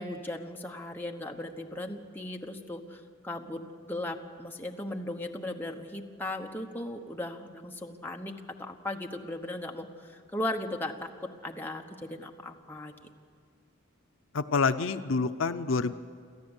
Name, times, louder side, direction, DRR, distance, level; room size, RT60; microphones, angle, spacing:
voice 1, 0.0-11.1 11.4-12.9, left 1 dB, 10° left, 2 dB, 1.1 m, -37 dB
voice 2, 14.3-15.9, left 4 dB, 70° left, 10 dB, 0.6 m, -27 dB
27.5 x 14.0 x 8.1 m, 2.2 s
head